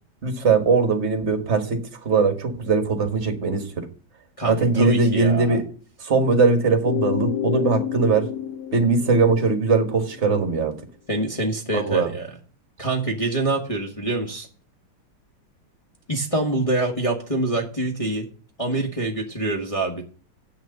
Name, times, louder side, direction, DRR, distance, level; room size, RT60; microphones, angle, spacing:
voice 1, 0.2-3.9 4.4-5.6 6.0-8.3 8.7-10.8 11.7-12.1, right 4 dB, 35° right, 1.7 m, -20 dB
voice 2, 4.4-5.6 11.1-12.3 12.8-14.5 16.1-18.3 18.6-20.0, right 2 dB, 20° left, 1.2 m, -25 dB
sound 1, 6.8-10.5, left 11 dB, 70° left, 1.0 m, -29 dB
8.0 x 6.2 x 7.8 m
omnidirectional pair, 2.3 m